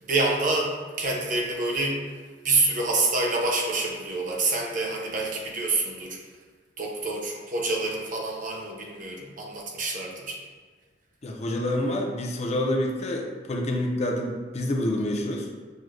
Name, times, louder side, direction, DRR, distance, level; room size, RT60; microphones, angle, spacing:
voice 1, 0.0-2.0 2.4-6.2 6.8-10.4, right 2 dB, 45° right, -1 dB, 0.7 m, -27 dB
voice 2, 11.2-15.5, left 1 dB, 35° left, 1 dB, 0.5 m, -27 dB
6.1 x 2.1 x 2.5 m, 1.5 s
head